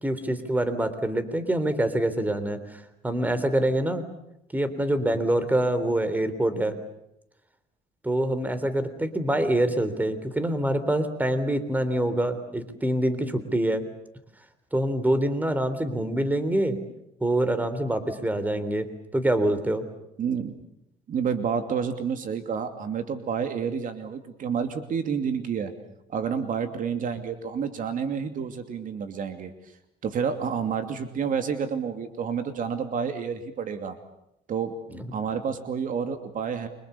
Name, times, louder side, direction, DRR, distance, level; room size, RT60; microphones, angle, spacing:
voice 1, 0.0-4.1 4.5-6.7 8.0-13.8 14.7-16.8 17.2-18.9 19.1-19.8 34.9-35.0, right 1 dB, 10° right, 11 dB, 3.6 m, -25 dB
voice 2, 20.2-20.6 21.1-25.7 26.1-29.5 30.0-34.0 34.5-34.7 35.1-36.7, right 7 dB, 50° right, 8 dB, 2.7 m, -29 dB
30.0 x 25.0 x 7.0 m, 0.80 s
cardioid pair, 110°, 17 cm